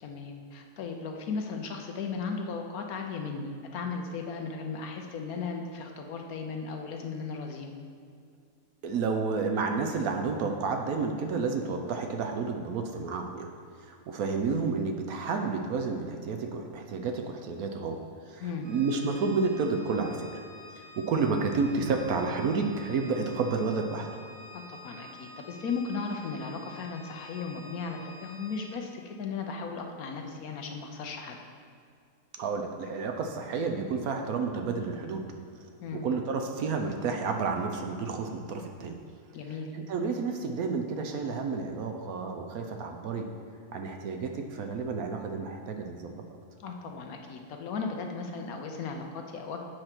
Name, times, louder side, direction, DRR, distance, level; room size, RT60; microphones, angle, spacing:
voice 1, 0.0-7.7 18.4-18.7 24.5-31.4 35.8-36.1 39.3-39.7 46.6-49.6, left 4 dB, 65° left, 3 dB, 1.1 m, -36 dB
voice 2, 8.8-13.5 13.8-18.0 18.3-20.3 20.8-24.1 32.4-35.2 35.9-39.0 39.7-43.3 43.7-46.2, right 4 dB, 70° right, 4 dB, 1.0 m, -30 dB
Organ, 18.6-29.0, left 2 dB, 15° right, 1.5 m, -49 dB
7.7 x 4.5 x 5.8 m, 2.2 s
omnidirectional pair, 1.8 m